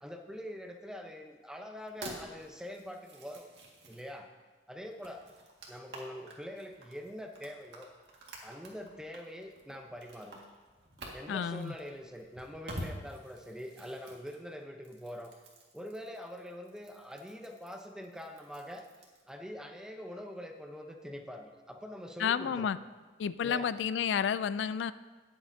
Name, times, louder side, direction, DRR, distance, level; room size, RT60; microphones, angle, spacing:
voice 1, 0.0-3.5 3.9-4.3 4.7-5.2 5.7-7.9 8.4-10.4 11.1-15.3 15.7-18.9 19.3-22.7 23.4-23.7, equal, 5° right, 3 dB, 0.8 m, -44 dB
sound 1, 1.8-4.2 4.8-19.3, right 1 dB, 70° right, 2.0 m, -49 dB
voice 2, 11.3-11.7 22.2-22.8 23.2-24.9, left 7 dB, 85° left, 15 dB, 0.3 m, -31 dB
19.5 x 7.4 x 2.8 m, 1.4 s
head